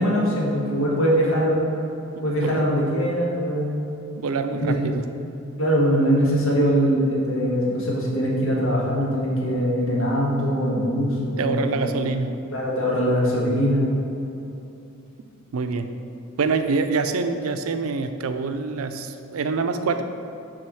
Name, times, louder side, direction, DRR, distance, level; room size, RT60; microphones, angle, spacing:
voice 1, 0.0-1.7 2.2-4.0 4.5-4.8 5.6-12.0 12.5-13.9, equal, 75° left, -4 dB, 1.6 m, -22 dB
voice 2, 2.2-2.6 4.2-5.1 11.4-12.4 15.5-15.9 16.4-20.0, right 4 dB, 90° right, 8 dB, 0.4 m, -26 dB
6.4 x 3.5 x 6.1 m, 2.8 s
head